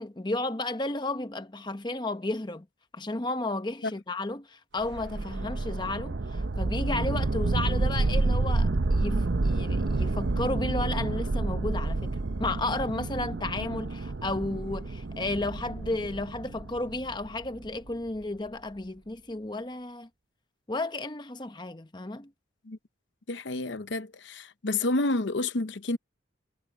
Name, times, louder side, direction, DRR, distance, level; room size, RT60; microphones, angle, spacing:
voice 1, 0.0-2.7 2.9-20.1 20.7-22.3, left 2 dB, 20° left, 0.8 m, -33 dB
sound 1, 4.8-17.9, right 2 dB, 60° right, 0.7 m, -29 dB
voice 2, 23.3-26.0, left 2 dB, 65° left, 0.8 m, -29 dB
head